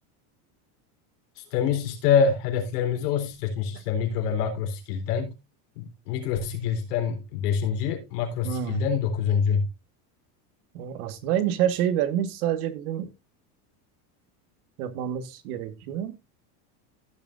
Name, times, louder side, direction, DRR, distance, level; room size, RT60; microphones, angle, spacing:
voice 1, 1.4-5.3 5.8-9.7, left 7 dB, 85° left, 3.7 m, -26 dB
voice 2, 8.4-8.8 10.7-13.1 14.8-16.2, right 10 dB, 70° right, 1.5 m, -27 dB
15.0 x 7.2 x 2.5 m
supercardioid pair, 160°, 46 cm